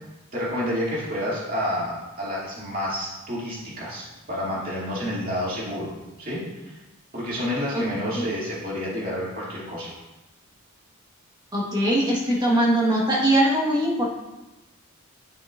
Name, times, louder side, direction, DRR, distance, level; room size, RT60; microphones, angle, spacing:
voice 1, 0.3-5.9 6.2-6.8 7.1-9.9, equal, 40° right, -7 dB, 2.5 m, -29 dB
voice 2, 11.5-14.1, right 1 dB, 20° right, -4 dB, 1.4 m, -21 dB
11.0 x 5.9 x 2.5 m, 1.0 s
head